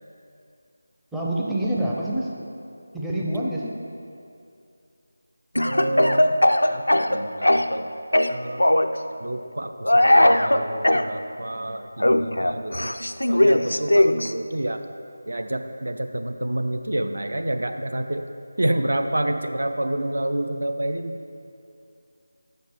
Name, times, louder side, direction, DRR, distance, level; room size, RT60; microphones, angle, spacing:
voice 1, 1.1-2.3 2.9-3.8, right 1 dB, ahead, -7 dB, 0.5 m, -26 dB
Speech / Cough, 5.6-7.8 8.1-8.9 9.8-11.1 12.0-14.3, left 1 dB, 75° left, 0.3 m, -19 dB
voice 2, 5.6-6.4 6.7-7.9 8.3-8.6 9.2-12.9 13.3-14.8 15.3-18.2 18.6-21.2, right 1 dB, 60° right, 7 dB, 0.5 m, -28 dB
6.6 x 5.1 x 6.1 m, 2.5 s
figure-of-eight pair, 165°, 0 cm